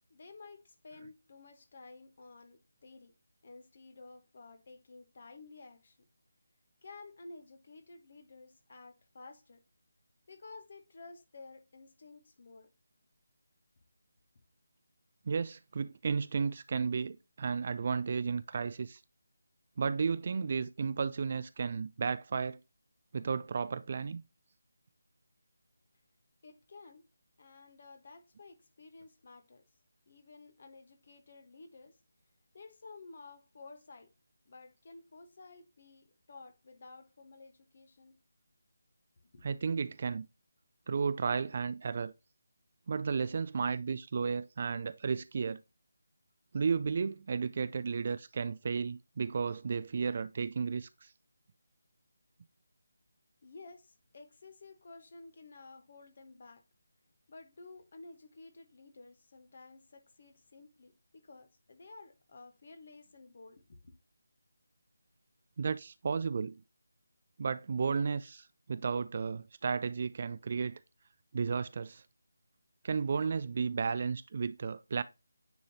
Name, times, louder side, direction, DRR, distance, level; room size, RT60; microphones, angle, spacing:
voice 1, 0.1-3.1 3.4-6.0 6.8-9.6 10.3-12.7 26.4-27.0 27.4-29.6 30.1-32.0 32.5-34.1 34.4-38.2 39.3-39.4 53.4-56.6 57.3-64.0, left 3 dB, 45° left, 1.2 m, -53 dB
voice 2, 15.3-19.0 19.8-22.6 23.1-24.2 39.4-40.3 40.9-42.1 42.9-45.6 46.5-51.1 65.6-66.6 67.4-70.8 71.3-72.0 72.8-75.0, right 5 dB, 40° right, 0.4 m, -33 dB
9.5 x 3.9 x 2.8 m
figure-of-eight pair, 155°, 0 cm